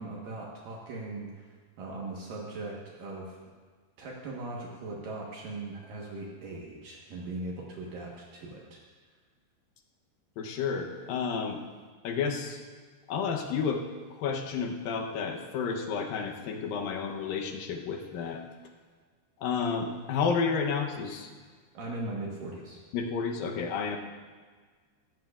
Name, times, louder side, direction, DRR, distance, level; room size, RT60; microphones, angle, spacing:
voice 1, 0.0-1.5 1.8-3.4 4.0-8.8 21.7-22.8, right 2 dB, 65° right, -3 dB, 2.7 m, -39 dB
voice 2, 10.4-11.6 12.0-12.6 13.1-13.9 14.2-18.4 19.4-21.3 22.9-24.0, left 5 dB, 70° left, 3 dB, 2.3 m, -31 dB
17.0 x 15.0 x 2.4 m, 1.5 s
omnidirectional pair, 4.7 m